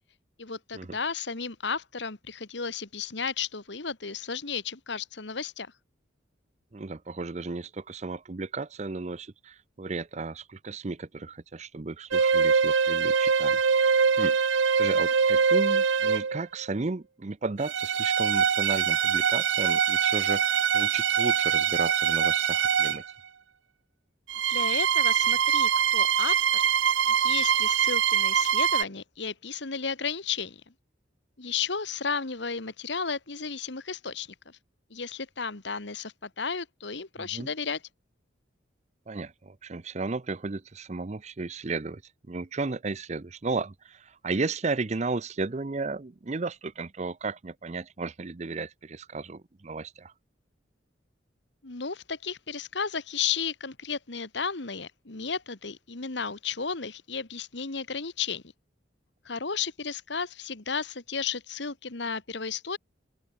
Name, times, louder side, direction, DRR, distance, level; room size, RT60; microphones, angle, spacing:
voice 1, 0.4-5.7 24.4-26.6 27.1-30.6 31.4-34.6 34.9-37.8 51.6-58.4 59.2-62.8, left 5 dB, 70° left, 1.7 m, -33 dB
voice 2, 6.7-14.4 14.8-23.0 37.2-37.5 39.1-42.0 42.3-50.1, right 3 dB, 35° right, 0.6 m, -34 dB
sound 1, 12.1-16.4 17.6-23.1 24.3-28.8, right 7 dB, 90° right, 0.7 m, -23 dB
open air
head